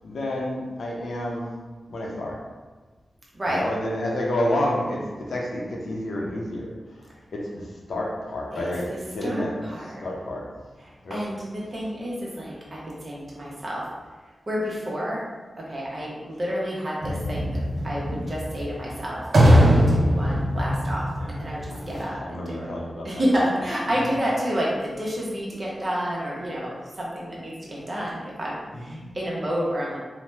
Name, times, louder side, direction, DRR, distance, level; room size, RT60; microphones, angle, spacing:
voice 1, 0.0-1.5 1.9-2.4 3.5-6.8 7.3-9.5 10.0-10.4 11.0-11.2 21.7-23.2 23.9-24.1 28.7-29.1, left 1 dB, 80° left, -3 dB, 0.6 m, -29 dB
voice 2, 8.5-10.0 10.8-13.8 14.5-15.3 15.6-19.2 19.6-22.7 23.0-30.0, equal, 40° right, -4 dB, 0.8 m, -30 dB
sound 1, 17.0-22.0, equal, 65° right, 0.5 m, -21 dB
2.8 x 2.1 x 3.3 m, 1.3 s
cardioid pair, 70°, 0 cm